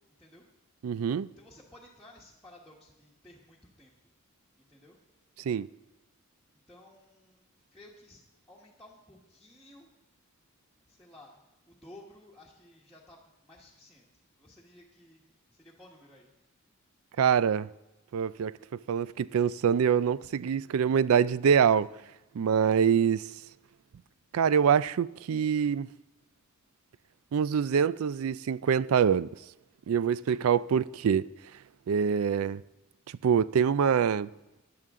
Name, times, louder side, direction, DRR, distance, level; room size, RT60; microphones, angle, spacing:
voice 1, 0.8-1.3 5.4-5.7 17.2-17.7 18.1-21.9 22.3-23.3 24.3-25.9 27.3-29.3 29.9-31.3 31.9-32.6 33.2-34.3, right 7 dB, 75° right, 0.4 m, -25 dB
voice 2, 1.4-3.9 4.7-5.0 6.7-7.4 7.7-8.2 8.5-9.9 10.9-14.0 14.4-15.2 15.5-16.3, left 1 dB, ahead, 1.4 m, -55 dB
15.5 x 10.5 x 3.7 m
head